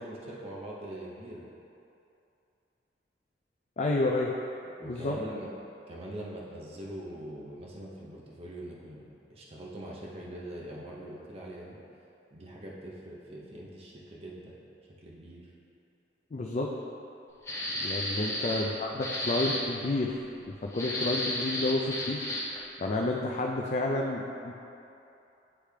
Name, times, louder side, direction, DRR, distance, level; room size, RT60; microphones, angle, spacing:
voice 1, 0.0-1.4 4.8-5.5 5.9-11.8 12.3-14.5 15.0-15.5 18.2-18.6 18.9-19.0, right 1 dB, 35° right, -4 dB, 0.7 m, -43 dB
voice 2, 3.8-4.3 4.8-5.2 16.3-16.7 17.8-20.2 20.5-22.2 22.8-24.5, left 2 dB, 40° left, -1 dB, 0.4 m, -30 dB
sound 1, 17.5-18.7 19.0-19.6 20.7-22.6, left 1 dB, 15° left, 0.9 m, -33 dB
9.8 x 3.4 x 3.3 m, 2.8 s
head